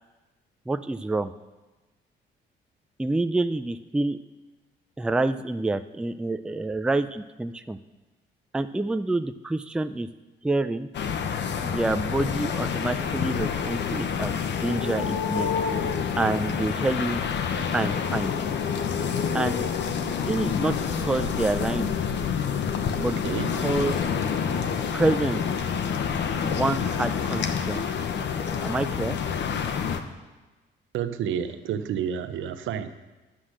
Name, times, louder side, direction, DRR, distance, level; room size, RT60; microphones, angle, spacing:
voice 1, 0.7-1.3 3.0-4.2 5.0-7.8 8.5-10.1 10.4-10.9 11.6-14.3 14.6-15.5 16.2-17.2 17.7-18.3 19.3-19.7 20.2-21.9 23.0-23.2 23.6-24.0 24.9-25.4 26.4-27.8 28.6-29.2, right 2 dB, 5° right, 9 dB, 0.4 m, -27 dB
sound 1, 10.9-30.0, left 7 dB, 65° left, 0.9 m, -28 dB
voice 2, 23.2-23.6 30.9-33.0, right 8 dB, 75° right, 10 dB, 0.8 m, -30 dB
9.9 x 7.3 x 6.4 m, 1.2 s
cardioid pair, 90°, 20 cm